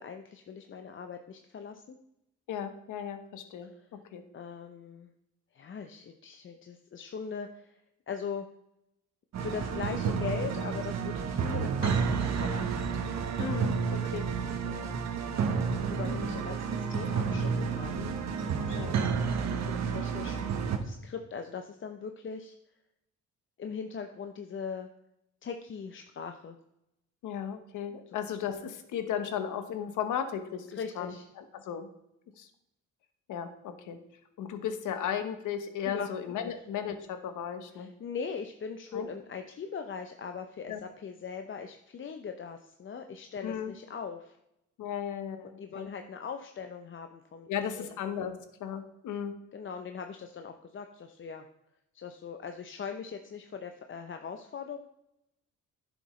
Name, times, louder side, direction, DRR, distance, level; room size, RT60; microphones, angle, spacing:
voice 1, 0.0-2.0 3.6-3.9 4.3-5.1 5.5-8.5 9.4-12.7 14.6-15.4 15.8-18.2 18.4-18.8 19.6-22.6 23.6-24.9 25.4-26.6 28.1-28.2 30.7-31.3 35.8-36.1 36.4-36.5 37.7-44.4 45.6-47.5 47.8-47.9 49.5-51.5 51.9-54.8, left 6 dB, 40° left, 6 dB, 0.7 m, -40 dB
voice 2, 2.5-3.7 4.1-4.2 13.4-14.3 18.7-18.9 27.2-31.9 32.4-32.5 33.3-34.0 34.4-37.9 38.9-39.1 40.7-40.8 43.4-43.7 44.8-45.9 47.5-49.4, left 8 dB, 80° left, 8 dB, 1.1 m, -35 dB
sound 1, 9.3-20.8, right 6 dB, 60° right, 1.2 m, -30 dB
11.0 x 7.0 x 3.2 m, 0.84 s
cardioid pair, 90°, 30 cm